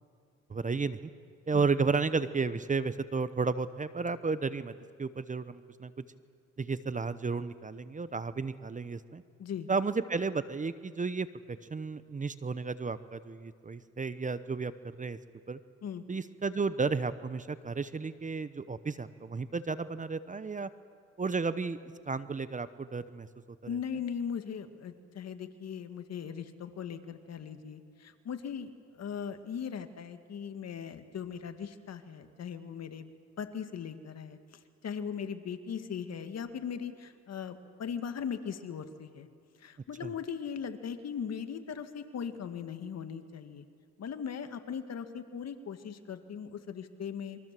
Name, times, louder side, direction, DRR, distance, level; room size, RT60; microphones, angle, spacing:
voice 1, 0.5-1.1 1.5-4.7 5.0-5.9 6.6-9.2 9.7-14.7 15.0-15.2 15.5-15.6 16.1-20.7 21.2-21.8 22.1-23.3 40.0-40.1, right 4 dB, 25° right, 14 dB, 0.9 m, -33 dB
voice 2, 23.7-33.0 33.4-39.3 39.6-43.6 44.0-47.4, left 7 dB, 60° left, 8 dB, 1.9 m, -39 dB
28.0 x 23.5 x 7.6 m, 2.2 s
cardioid pair, 90°, 30 cm